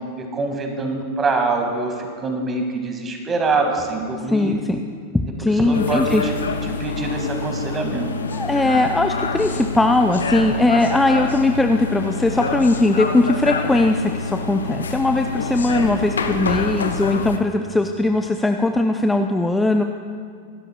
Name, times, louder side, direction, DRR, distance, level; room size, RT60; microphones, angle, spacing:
voice 1, 0.2-4.6 5.4-6.3 6.7-8.1, right 3 dB, 20° right, 3 dB, 1.9 m, -24 dB
voice 2, 4.3-4.8 5.1-6.2 8.3-19.8, left 2 dB, 5° left, 5 dB, 0.5 m, -19 dB
sound 1, 5.7-17.4, left 4 dB, 70° left, 0.8 m, -27 dB
25.0 x 12.5 x 2.3 m, 2.2 s
figure-of-eight pair, 90°, 0 cm